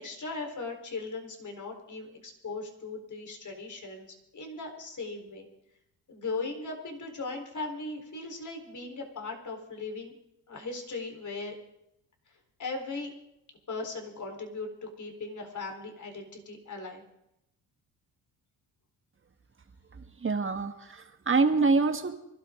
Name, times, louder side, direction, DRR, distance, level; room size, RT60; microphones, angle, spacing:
voice 1, 0.0-4.1 4.3-5.5 6.1-10.1 10.5-11.6 12.6-13.1 13.7-14.7 15.0-17.0, left 3 dB, 45° left, 3 dB, 4.2 m, -38 dB
voice 2, 20.2-22.2, right 4 dB, 30° right, 7 dB, 1.7 m, -25 dB
24.5 x 13.0 x 3.8 m, 0.83 s
supercardioid pair, 75°, 42 cm